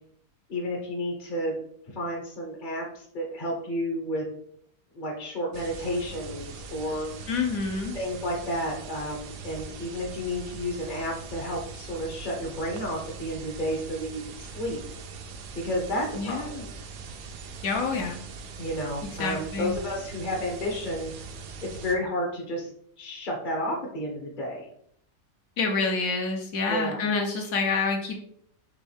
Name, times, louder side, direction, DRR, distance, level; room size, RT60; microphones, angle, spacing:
voice 1, 0.5-1.6 1.9-4.2 4.9-7.1 7.9-14.8 15.5-16.7 18.6-21.1 21.6-22.7 23.0-24.7 26.7-27.0, equal, 40° left, -1 dB, 0.7 m, -31 dB
sound 1, 5.5-22.0, right 4 dB, 75° right, 1.2 m, -41 dB
voice 2, 7.3-7.9 16.2-16.6 17.6-18.2 19.2-19.7 25.6-28.2, left 4 dB, 65° left, 2 dB, 0.9 m, -27 dB
5.4 x 3.1 x 3.2 m, 0.68 s
omnidirectional pair, 1.8 m